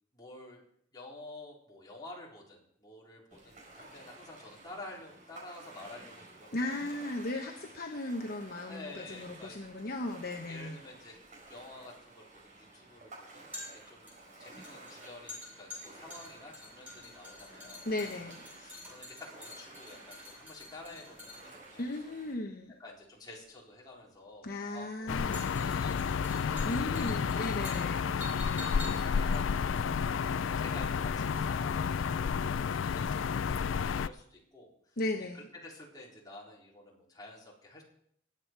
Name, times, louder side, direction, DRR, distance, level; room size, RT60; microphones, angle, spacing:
voice 1, 0.1-0.6 0.9-7.2 8.7-9.9 10.5-11.2 11.5-14.1 14.4-22.1 22.8-27.1 27.6-29.8 30.2-35.0 35.3-37.8, left 2 dB, 20° left, -4 dB, 4.0 m, -50 dB
Ocean, 3.3-22.3, right 2 dB, 40° right, 4.9 m, -53 dB
voice 2, 6.5-10.8 17.9-18.4 21.8-22.7 24.4-25.5 26.6-28.1 35.0-35.4, left 2 dB, 50° left, 3 dB, 1.0 m, -36 dB
sound 1, 11.4-30.6 30.9-31.0, left 1 dB, 10° right, 7.8 m, -49 dB
sound 2, 25.1-34.1, left 6 dB, 70° left, 0.4 m, -31 dB
21.0 x 8.3 x 4.5 m, 0.67 s
head